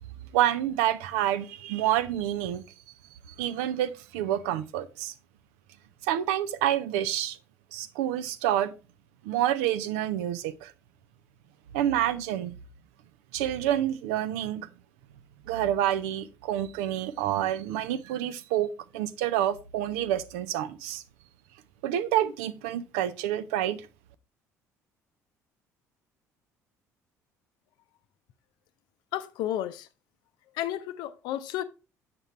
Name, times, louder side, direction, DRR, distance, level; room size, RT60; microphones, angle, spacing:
voice 1, 0.3-2.6 3.4-5.1 6.1-7.4 7.7-8.7 9.2-10.7 11.7-12.5 13.3-14.7 15.5-21.0 21.8-23.9, right 12 dB, 65° right, 0.5 m, -28 dB
voice 2, 29.1-29.9 30.5-31.6, left 12 dB, 60° left, 0.5 m, -32 dB
7.8 x 5.9 x 3.1 m
figure-of-eight pair, 55°, 8 cm